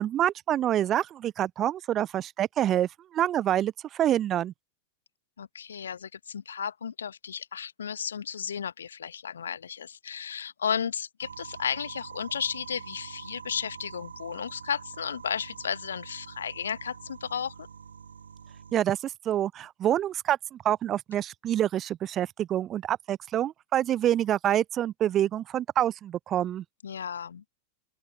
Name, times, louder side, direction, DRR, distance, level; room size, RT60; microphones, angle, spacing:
voice 1, 0.0-4.5 18.7-26.6, right 11 dB, 30° right, 0.3 m, -27 dB
voice 2, 5.4-17.7 26.8-27.4, left 7 dB, 70° left, 1.4 m, -34 dB
sound 1, 11.2-18.8, right 6 dB, 70° right, 2.8 m, -45 dB
open air
figure-of-eight pair, 90°, 0 cm